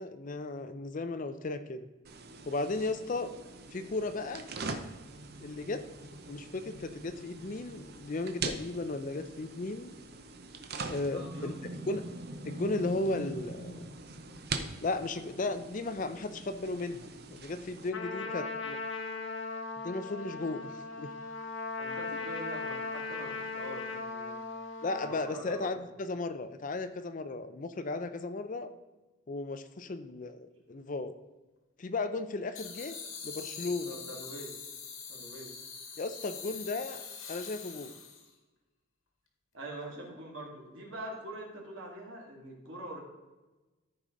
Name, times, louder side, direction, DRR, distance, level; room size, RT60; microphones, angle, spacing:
voice 1, 0.0-1.9 2.5-3.3 3.7-4.5 5.4-5.8 6.3-9.9 10.9-11.5 11.9-12.0 12.4-13.9 14.8-18.8 19.8-21.1 24.8-28.7 29.3-31.1 31.8-33.0 33.2-34.0 36.0-37.0 37.3-38.0, left 2 dB, 35° left, 10 dB, 0.4 m, -35 dB
sound 1, 2.0-17.9, right 3 dB, 45° right, 0.7 m, -43 dB
voice 2, 11.1-11.9 18.1-18.4 20.6-20.7 21.8-24.4 25.0-25.8 33.8-34.5 35.1-35.5 39.5-43.0, right 1 dB, 65° right, -1 dB, 2.3 m, -44 dB
Trumpet, 17.9-25.3, left 3 dB, 60° left, 1.0 m, -38 dB
sound 2, 32.5-38.3, left 6 dB, 80° left, 1.6 m, -44 dB
14.0 x 4.9 x 3.9 m, 1.2 s
head